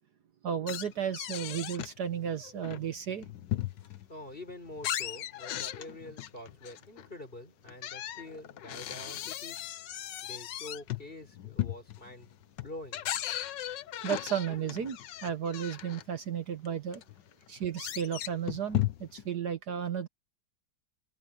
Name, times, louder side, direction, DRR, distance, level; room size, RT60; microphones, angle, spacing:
voice 1, 0.4-3.3 14.0-17.0 17.5-20.1, right 8 dB, 60° right, 1.6 m, -34 dB
sound 1, 0.7-2.0 2.4-4.1 4.5-7.1 7.7-16.0 16.6-16.7 16.9-19.3, left 13 dB, 75° left, 1.4 m, -37 dB
voice 2, 4.1-9.6 10.2-12.3 12.6-13.0, left 1 dB, 30° left, 5.2 m, -46 dB
omnidirectional pair, 2.0 m